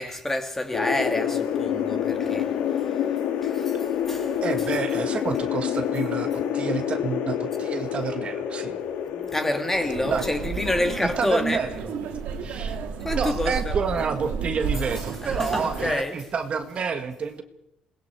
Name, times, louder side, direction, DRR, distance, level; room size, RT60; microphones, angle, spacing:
voice 1, 0.0-2.6 3.4-4.4 8.7-8.8 9.1-11.6 13.0-13.7 15.4-16.2, left 1 dB, 10° left, 2.6 m, -28 dB
sound 1, 0.7-13.1, left 9 dB, 85° left, 2.4 m, -28 dB
voice 2, 4.4-8.8 10.1-10.3 11.0-12.0 12.4-12.8 13.1-17.4, right 5 dB, 40° right, 1.9 m, -29 dB
sound 2, 9.7-15.9, right 6 dB, 80° right, 2.8 m, -32 dB
27.5 x 20.0 x 4.7 m
cardioid pair, 120°, 3 cm